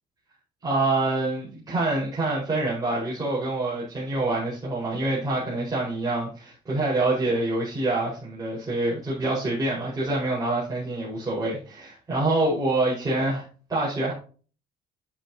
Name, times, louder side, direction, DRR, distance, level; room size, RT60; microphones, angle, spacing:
voice 1, 0.6-13.4 13.7-14.1, right 2 dB, 20° right, 5.1 m, -26 dB
9.0 x 8.8 x 2.9 m
cardioid pair, 110°, 17 cm